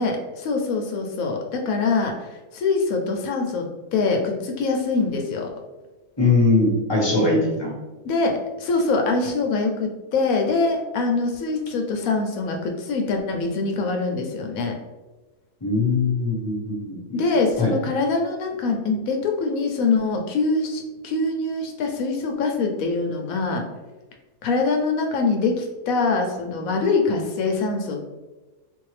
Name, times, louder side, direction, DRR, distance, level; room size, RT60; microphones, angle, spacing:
voice 1, 0.0-5.5 8.0-14.8 17.1-23.7 24.4-28.1, left 3 dB, 70° left, 2 dB, 0.9 m, -24 dB
voice 2, 6.2-7.7 15.6-17.2 17.6-17.7, left 3 dB, 25° left, -3 dB, 0.5 m, -21 dB
3.8 x 2.6 x 3.1 m, 1.2 s
omnidirectional pair, 1.7 m